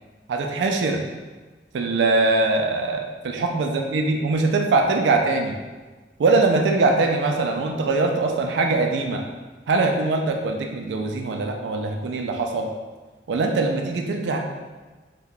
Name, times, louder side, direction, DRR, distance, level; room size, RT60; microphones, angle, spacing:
voice 1, 0.3-1.0 1.7-5.6 6.2-9.3 9.7-12.7 13.3-14.4, right 3 dB, 80° right, 2 dB, 0.4 m, -22 dB
2.8 x 2.2 x 3.7 m, 1.3 s
head